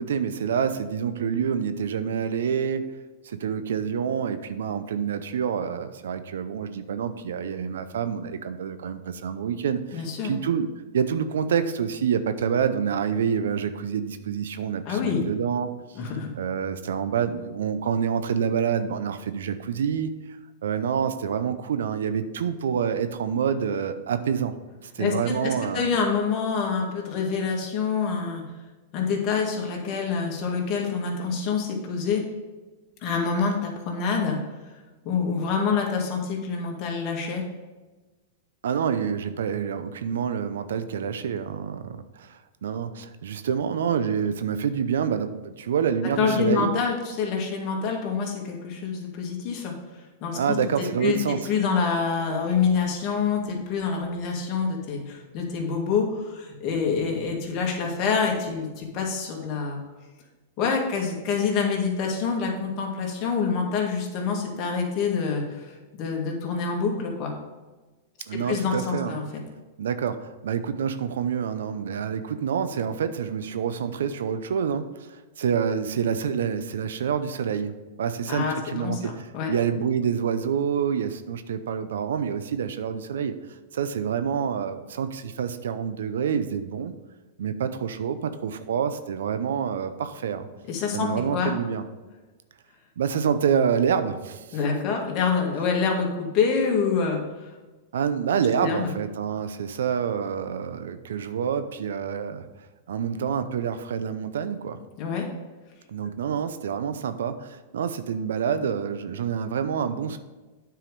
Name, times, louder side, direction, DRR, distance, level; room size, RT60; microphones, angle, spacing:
voice 1, 0.0-2.8 3.2-10.7 10.9-16.0 16.4-20.1 20.6-24.5 24.9-25.9 38.6-46.7 50.3-51.4 68.3-69.2 69.8-83.3 83.7-86.9 87.4-90.5 90.9-91.8 93.0-94.6 97.9-102.4 102.9-104.8 105.9-110.2, right 7 dB, 80° right, 11 dB, 0.6 m, -27 dB
voice 2, 9.9-10.3 14.9-15.2 16.0-16.3 25.0-28.4 28.9-32.2 33.0-34.4 35.0-37.4 46.2-49.7 50.2-50.6 51.0-59.8 60.6-67.3 68.5-69.2 78.3-79.5 90.7-91.5 94.5-97.5 98.6-98.9 105.0-105.3, left 5 dB, 40° left, 0 dB, 2.0 m, -26 dB
9.0 x 4.8 x 5.3 m, 1.2 s
hypercardioid pair, 120°, 0 cm